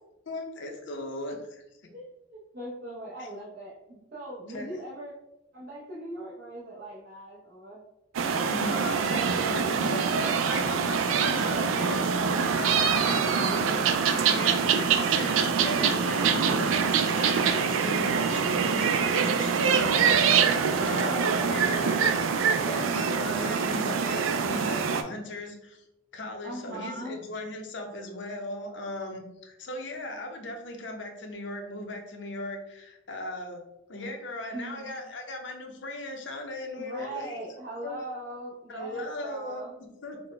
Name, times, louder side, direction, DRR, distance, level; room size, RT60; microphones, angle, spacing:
voice 1, 0.3-1.6 3.2-3.3 4.5-4.9 8.5-20.4 20.8-22.0 22.5-25.8 26.1-33.6 33.9-37.4 37.8-38.0 38.7-39.6 40.0-40.2, left 2 dB, 65° left, 3 dB, 0.6 m, -37 dB
voice 2, 2.3-5.1 5.5-7.8 12.9-14.0 20.9-22.3 26.4-27.2 34.5-35.0 36.8-39.7, right 1 dB, 50° right, -7 dB, 0.7 m, -40 dB
sound 1, 8.1-25.0, right 6 dB, 85° right, 0.3 m, -25 dB
4.1 x 2.1 x 3.2 m, 0.89 s
head